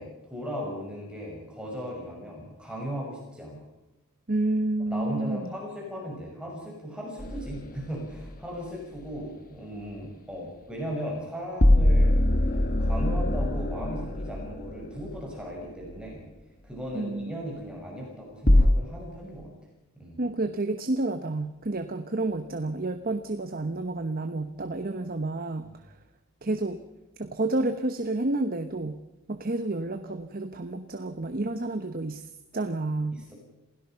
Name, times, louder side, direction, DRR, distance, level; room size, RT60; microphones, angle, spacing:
voice 1, 0.0-3.6 4.9-12.2 12.8-16.2 16.6-19.5 20.0-20.2 33.1-33.3, equal, 5° right, -2 dB, 6.0 m, -37 dB
voice 2, 4.3-5.5 16.9-17.4 20.2-26.0 26.4-26.8 27.2-29.0 29.3-32.3 32.5-33.2, right 2 dB, 40° right, 8 dB, 1.0 m, -30 dB
sound 1, 7.2-7.7 11.6-15.0 18.5-18.7, left 1 dB, 40° left, 1.3 m, -22 dB
27.5 x 17.0 x 5.7 m, 0.94 s
head